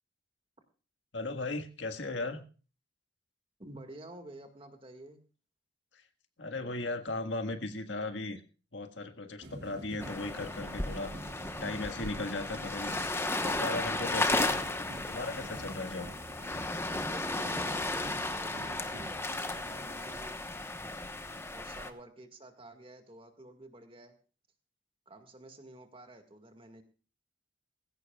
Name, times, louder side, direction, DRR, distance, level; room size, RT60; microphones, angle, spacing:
voice 1, 1.1-2.4 6.4-8.4 8.7-11.1 11.6-16.1 21.3-21.6, left 2 dB, 80° left, 6 dB, 1.7 m, -37 dB
voice 2, 3.6-5.2 17.1-20.4 21.5-24.2 25.1-26.8, right 1 dB, 30° right, 6 dB, 1.9 m, -51 dB
sound 1, 9.4-20.2, right 1 dB, 65° right, 2.4 m, -47 dB
sound 2, 10.0-21.9, left 2 dB, 15° left, 1.1 m, -34 dB
20.0 x 16.0 x 2.4 m, 0.36 s
head